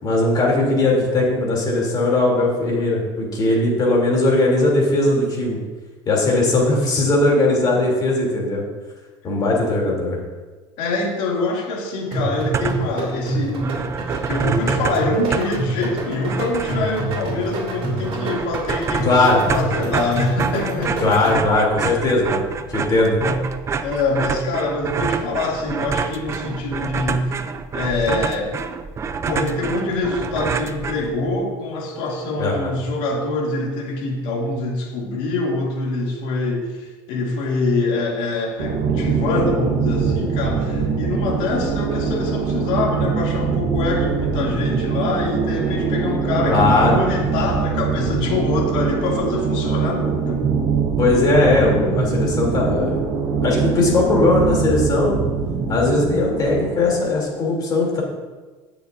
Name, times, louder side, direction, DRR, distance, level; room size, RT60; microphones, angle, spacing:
voice 1, 0.0-5.6 6.1-8.6 9.2-10.2 19.0-19.4 21.0-22.4 22.7-23.2 32.4-32.7 46.4-47.0 51.0-53.0 53.4-55.2 55.7-58.0, left 2 dB, 30° left, -2 dB, 3.0 m, -19 dB
voice 2, 6.4-6.7 10.8-21.4 23.2-23.4 23.8-27.4 27.7-28.6 29.2-50.4, left 2 dB, 70° left, -1 dB, 2.5 m, -25 dB
sound 1, 12.1-21.7, right 1 dB, 45° right, 2.9 m, -27 dB
sound 2, 12.3-13.0 13.3-13.4 13.6-31.4, right 5 dB, 20° right, 0.4 m, -28 dB
sound 3, 38.6-57.2, right 5 dB, 70° right, 2.7 m, -23 dB
17.0 x 6.7 x 2.6 m, 1.3 s
cardioid pair, 145°, 13 cm